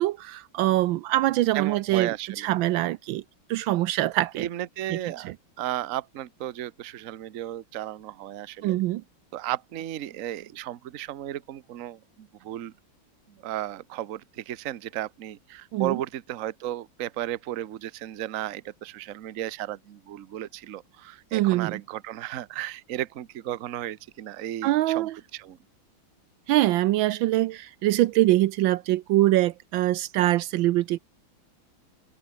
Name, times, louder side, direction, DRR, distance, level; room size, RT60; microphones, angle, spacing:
voice 1, 0.0-2.1 2.4-3.2 3.5-4.5 4.9-5.0 5.2-5.3 8.6-9.0 15.7-16.0 21.3-21.8 24.6-25.1 26.5-31.0, right 15 dB, 75° right, 1.3 m, -23 dB
voice 2, 1.5-2.5 4.3-8.8 9.3-12.7 13.3-25.6, right 13 dB, 55° right, 1.0 m, -34 dB
omnidirectional pair, 2.2 m